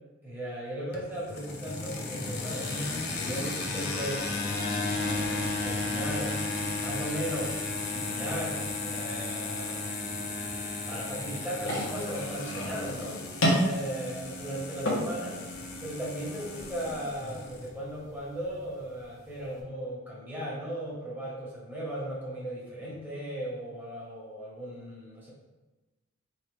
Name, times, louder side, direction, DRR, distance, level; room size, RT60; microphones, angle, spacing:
voice 1, 0.2-4.2 4.9-6.4 6.7-10.3 10.9-15.4 15.8-25.3, equal, 10° right, -6 dB, 1.3 m, -37 dB
sound 1, 0.9-17.7, left 2 dB, 55° left, 0.7 m, -34 dB
sound 2, 11.6-19.6, equal, 80° left, 1.0 m, -34 dB
4.1 x 3.2 x 3.3 m, 1.1 s
head